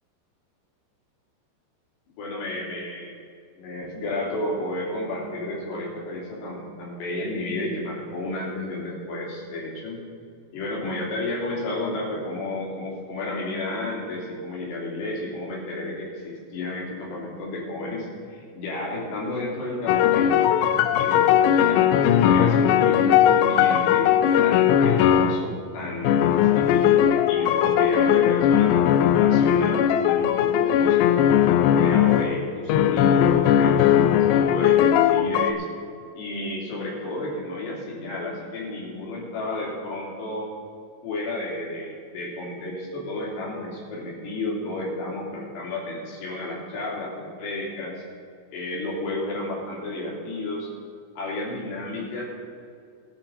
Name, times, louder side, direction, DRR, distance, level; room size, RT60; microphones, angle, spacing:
voice 1, 2.2-3.2 3.6-10.0 10.5-20.5 20.9-24.1 24.4-28.7 29.0-31.3 31.6-35.6 36.2-40.5 41.0-48.0 48.5-50.7 51.2-52.2, left 2 dB, 65° left, -4 dB, 5.1 m, -32 dB
sound 1, 19.9-25.5 26.0-32.3 32.7-35.5, left 10 dB, 80° left, 2.7 m, -19 dB
20.5 x 7.2 x 5.2 m, 2.3 s
omnidirectional pair, 5.2 m